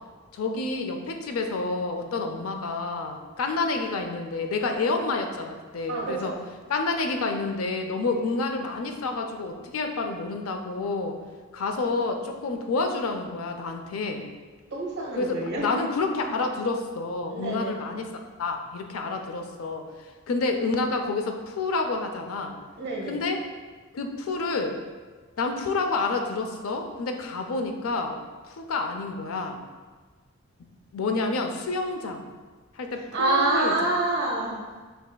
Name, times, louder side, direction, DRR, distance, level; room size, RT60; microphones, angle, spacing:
voice 1, 0.3-6.3 6.7-11.2 11.5-14.3 15.2-18.1 18.4-22.6 23.1-23.4 23.9-24.7 25.4-28.2 28.5-29.6 30.9-32.2 32.8-33.7, left 3 dB, 85° left, 5 dB, 0.5 m, -29 dB
voice 2, 5.9-6.4 14.7-15.7 17.3-17.7 22.8-23.2 33.1-34.6, right 2 dB, 50° right, -3 dB, 1.1 m, -27 dB
5.2 x 3.3 x 2.2 m, 1.4 s
head